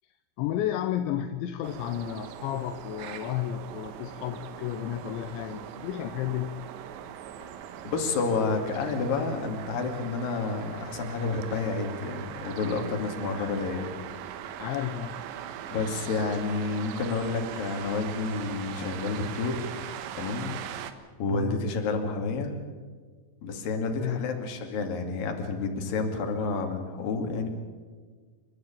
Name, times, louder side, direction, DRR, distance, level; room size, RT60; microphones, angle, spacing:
voice 1, 0.4-6.6 13.3-13.5 14.6-15.2 21.3-21.6 24.0-24.3, left 11 dB, 80° left, 8 dB, 3.1 m, -32 dB
sound 1, 1.6-20.9, right 10 dB, 85° right, 3.5 m, -40 dB
voice 2, 7.8-13.8 15.7-19.7 20.1-20.6 21.2-22.6 23.4-27.5, left 4 dB, 55° left, 4 dB, 3.8 m, -30 dB
29.0 x 12.5 x 8.7 m, 1.5 s
omnidirectional pair, 5.3 m